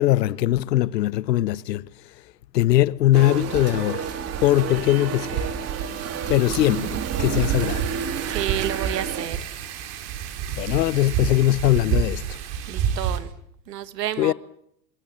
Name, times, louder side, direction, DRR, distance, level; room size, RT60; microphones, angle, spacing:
voice 1, 0.0-1.9 2.5-4.1 4.4-5.5 6.3-7.9 10.5-12.4 14.2-14.3, left 15 dB, 80° left, 1.0 m, -21 dB
sound 1, 3.1-9.3, right 7 dB, 30° right, 2.8 m, -31 dB
Wind, 3.1-13.2, right 7 dB, 50° right, 4.9 m, -30 dB
voice 2, 8.3-9.4 12.7-13.3 13.7-14.3, right 12 dB, 80° right, 1.9 m, -29 dB
26.0 x 21.5 x 7.3 m
hypercardioid pair, 95°, 48 cm